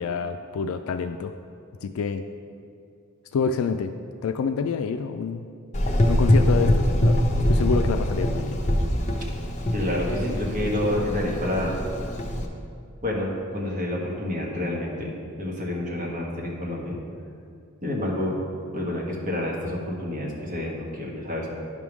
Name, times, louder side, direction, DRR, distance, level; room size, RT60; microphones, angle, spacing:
voice 1, 0.0-1.3 1.8-2.2 3.3-3.9 4.2-5.5 6.1-8.6, left 5 dB, 80° left, 8 dB, 0.3 m, -27 dB
Gurgling / Engine, 5.7-12.5, equal, 35° left, 0.8 m, -23 dB
voice 2, 9.7-11.8 13.0-15.1 15.4-17.0 17.8-18.4 18.7-21.5, left 1 dB, 40° right, -3 dB, 1.4 m, -28 dB
10.0 x 3.6 x 6.1 m, 2.4 s
head